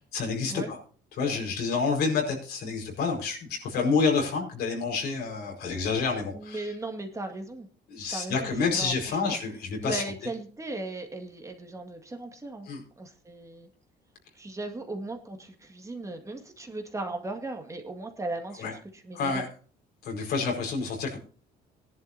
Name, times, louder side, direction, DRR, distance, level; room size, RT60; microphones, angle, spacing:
voice 1, 0.1-0.8 1.2-6.7 7.9-10.0 12.7-12.8 18.6-18.7 19.1-19.5 20.0-21.2, left 4 dB, 70° left, 1 dB, 4.9 m, -28 dB
voice 2, 6.3-7.7 8.1-9.4 9.8-12.7 13.0-13.7 14.3-18.6 18.9-19.5, right 2 dB, 20° right, 4 dB, 2.0 m, -37 dB
18.0 x 11.0 x 2.8 m, 0.41 s
cardioid pair, 110°, 17 cm